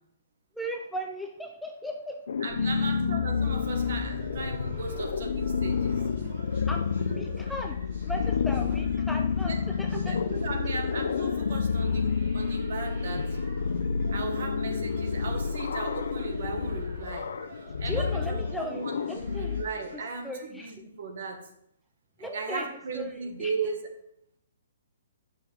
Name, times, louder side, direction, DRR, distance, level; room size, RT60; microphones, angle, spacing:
voice 1, 0.5-2.2 2.8-3.0 6.7-7.8 8.1-10.2 17.8-19.6 19.9-20.8 22.2-23.8, equal, ahead, 2 dB, 0.4 m, -37 dB
sound 1, 2.3-19.6, left 6 dB, 70° left, 0.6 m, -29 dB
voice 2, 2.4-6.0 7.0-7.4 9.4-9.6 9.8-13.3 14.1-17.3 17.8-19.0 19.3-21.4 22.2-23.8, right 4 dB, 55° right, 4 dB, 1.7 m, -37 dB
sound 2, 3.4-20.2, right 2 dB, 40° right, 2.4 m, -49 dB
10.0 x 6.2 x 3.6 m, 0.75 s
hypercardioid pair, 175°, 0 cm